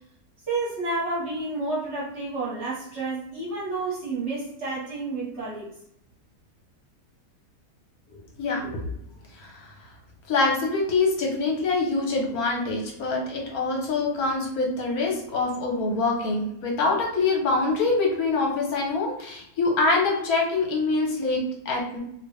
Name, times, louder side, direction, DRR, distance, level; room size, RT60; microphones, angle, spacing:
voice 1, 0.5-5.7, right 3 dB, 50° right, -6 dB, 1.2 m, -30 dB
voice 2, 8.1-8.9 9.4-9.7 10.3-22.0, left 3 dB, 70° left, 0 dB, 1.3 m, -25 dB
2.9 x 2.8 x 3.2 m, 0.75 s
omnidirectional pair, 1.7 m